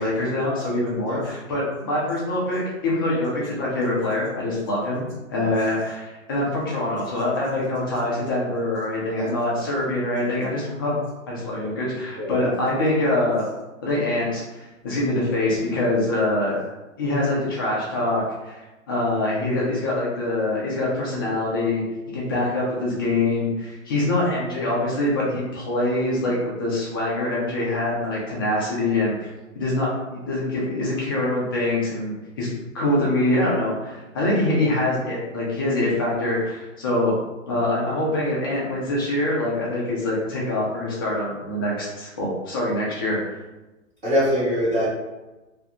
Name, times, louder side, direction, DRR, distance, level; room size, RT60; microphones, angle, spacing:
voice 1, 0.0-11.0 11.3-13.5 13.8-16.6 17.0-21.8 22.1-29.3 29.6-32.5 32.7-37.2 37.5-43.2, left 1 dB, 20° left, -5 dB, 0.4 m, -24 dB
voice 2, 12.2-12.5 44.0-44.9, equal, 15° right, -11 dB, 1.0 m, -23 dB
2.4 x 2.1 x 2.9 m, 1.1 s
hypercardioid pair, 130°, 40 cm